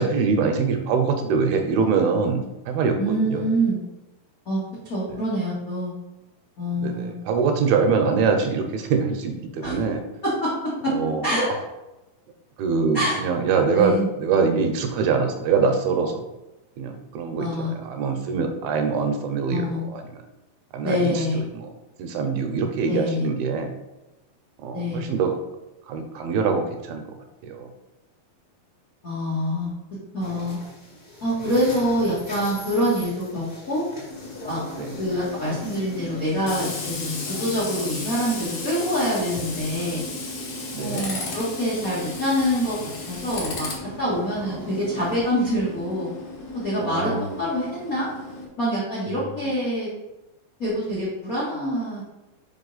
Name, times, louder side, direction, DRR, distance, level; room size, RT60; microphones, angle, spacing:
voice 1, 0.0-3.4 5.1-5.2 6.7-10.0 10.9-11.3 12.6-16.2 16.8-20.2 20.7-21.7 22.0-23.7 24.6-25.3 25.9-27.0 27.4-27.7 34.8-35.1 40.7-41.1 44.4-44.7 46.8-47.3 49.1-49.5, right 5 dB, 80° right, 5 dB, 2.5 m, -24 dB
voice 2, 3.0-3.8 4.4-4.6 4.8-5.9 6.6-7.2 9.6-9.7 10.2-10.9 11.2-11.5 12.9-13.2 13.7-14.1 17.4-17.7 19.5-19.8 20.8-21.4 22.8-23.2 24.7-25.0 29.0-29.7 30.1-30.6 31.2-33.9 34.5-34.6 35.0-40.1 40.8-42.8 43.1-43.7 44.0-46.1 46.5-47.1 47.4-48.1 48.6-49.9 50.6-52.0, equal, 90° left, -7 dB, 0.7 m, -25 dB
sound 1, 30.2-45.3, left 2 dB, 30° left, 1.7 m, -43 dB
Tools, 34.1-48.5, left 3 dB, 60° left, 1.5 m, -35 dB
5.5 x 5.2 x 4.0 m, 0.99 s
omnidirectional pair, 4.4 m